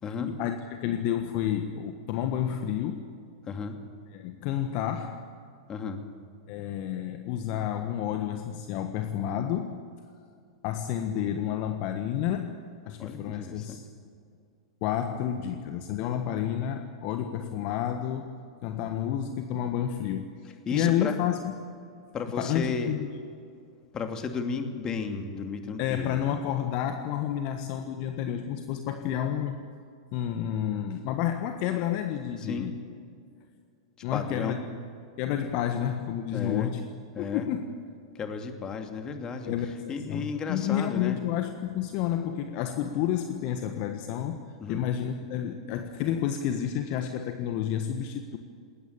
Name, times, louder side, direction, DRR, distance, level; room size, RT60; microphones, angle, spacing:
voice 1, 0.2-3.1 4.1-5.3 6.5-9.8 10.6-12.5 12.8-13.8 14.8-18.3 18.6-21.5 22.4-23.1 25.8-29.6 30.1-32.7 34.0-34.8 35.2-36.8 37.2-37.7 39.5-44.4 44.7-48.4, left 10 dB, 45° left, 7 dB, 1.4 m, -30 dB
voice 2, 3.5-3.8 5.7-6.0 13.0-13.8 20.7-21.2 22.1-22.9 23.9-26.2 32.4-32.7 34.1-34.6 36.3-36.7 37.1-37.5 38.1-39.5 39.9-41.2 44.6-44.8, left 5 dB, 25° left, 5 dB, 2.7 m, -33 dB
20.5 x 19.0 x 8.8 m, 2.4 s
figure-of-eight pair, 100°, 3 cm